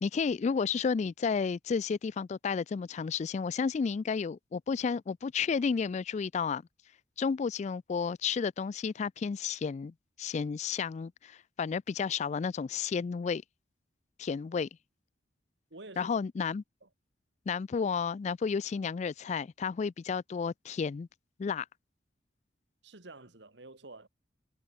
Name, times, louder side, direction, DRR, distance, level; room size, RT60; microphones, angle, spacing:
voice 1, 0.0-6.6 7.2-13.4 14.2-14.7 16.0-16.6 17.5-21.1 21.4-21.7, left 5 dB, 40° left, 0.3 m, -32 dB
voice 2, 15.7-16.2 16.8-16.9 22.8-24.1, right 2 dB, 65° right, 2.2 m, -49 dB
head